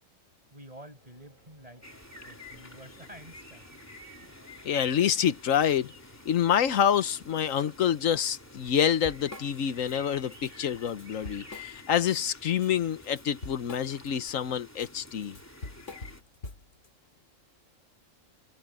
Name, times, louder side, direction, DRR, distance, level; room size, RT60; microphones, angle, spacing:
voice 1, 0.5-1.9 2.2-3.8 4.2-4.4, right 1 dB, 30° right, 5.5 m, -50 dB
sound 1, 0.9-11.5, left 1 dB, 40° left, 6.4 m, -62 dB
sound 2, 1.8-16.2, left 2 dB, 10° left, 3.0 m, -50 dB
voice 2, 4.6-5.9 6.2-15.4, left 9 dB, 85° left, 1.3 m, -27 dB
Drum kit / Drum, 8.2-8.3 8.7-10.0 10.3-10.5 10.9-12.1 12.5-16.9, left 2 dB, 65° left, 3.2 m, -44 dB
omnidirectional pair, 1.3 m